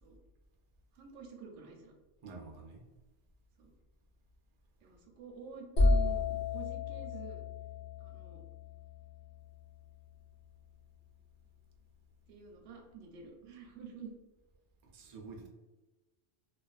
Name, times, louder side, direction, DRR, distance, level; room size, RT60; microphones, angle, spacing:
voice 1, 0.9-1.9 3.6-3.7 4.8-7.4 8.0-8.4 12.3-14.1, right 6 dB, 85° right, 2 dB, 0.9 m, -49 dB
voice 2, 2.2-2.8 14.9-15.5, right 4 dB, 60° right, 1 dB, 0.4 m, -48 dB
sound 1, 5.8-9.6, left 3 dB, 80° left, 0.9 m, -32 dB
2.4 x 2.2 x 2.3 m, 1.2 s
omnidirectional pair, 1.2 m